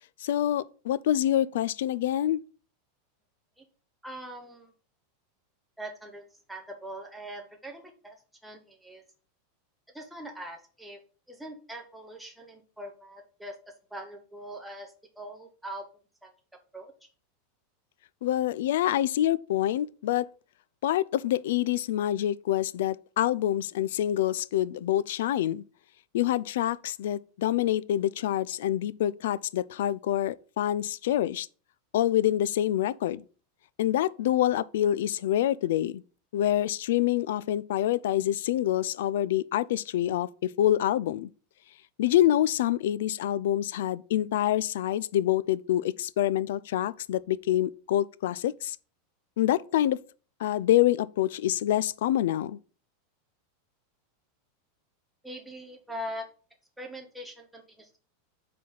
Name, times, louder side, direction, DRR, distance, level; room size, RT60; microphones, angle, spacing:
voice 1, 0.2-2.4 18.2-20.3 20.8-25.6 26.1-31.5 31.9-33.2 33.8-36.0 36.3-40.3 40.6-41.3 42.0-48.8 49.4-50.0 50.4-52.6, left 12 dB, 70° left, 0.3 m, -26 dB
voice 2, 4.0-4.7 5.8-6.2 6.5-9.0 9.9-11.0 11.3-15.9 16.2-16.3 16.7-17.1 55.2-56.3 56.8-58.0, equal, ahead, 0.7 m, -42 dB
4.7 x 4.0 x 5.7 m
supercardioid pair, 165°, 0 cm